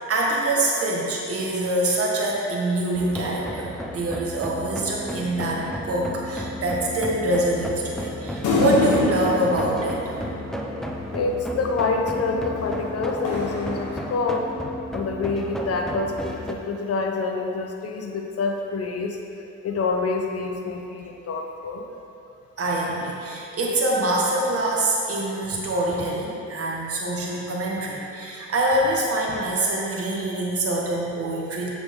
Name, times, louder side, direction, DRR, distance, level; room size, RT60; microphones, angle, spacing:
voice 1, 0.0-10.0 22.6-31.7, right 1 dB, 50° right, -3 dB, 1.7 m, -25 dB
sound 1, 2.9-16.5, left 1 dB, ahead, 0.7 m, -33 dB
sound 2, 8.4-11.1 12.6-14.6, left 3 dB, 75° left, 1.4 m, -27 dB
voice 2, 11.1-14.5 14.9-19.2 19.6-21.9, left 3 dB, 50° left, 2 dB, 0.9 m, -27 dB
7.8 x 7.0 x 3.7 m, 2.7 s
cardioid pair, 90°, 30 cm